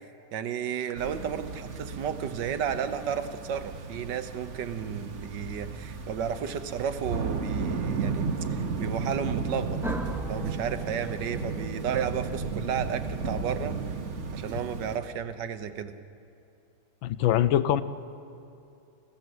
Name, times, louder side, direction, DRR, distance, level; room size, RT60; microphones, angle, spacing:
voice 1, 0.3-9.8 10.3-13.7 14.3-15.9, right 8 dB, 65° right, 11 dB, 1.5 m, -33 dB
sound 1, 1.0-15.0, right 4 dB, 45° right, 1.2 m, -34 dB
sound 2, 9.8-14.5, right 1 dB, ahead, 0.9 m, -39 dB
voice 2, 17.0-17.8, left 11 dB, 75° left, 15 dB, 1.4 m, -23 dB
28.0 x 15.5 x 7.9 m, 2.7 s
omnidirectional pair, 2.2 m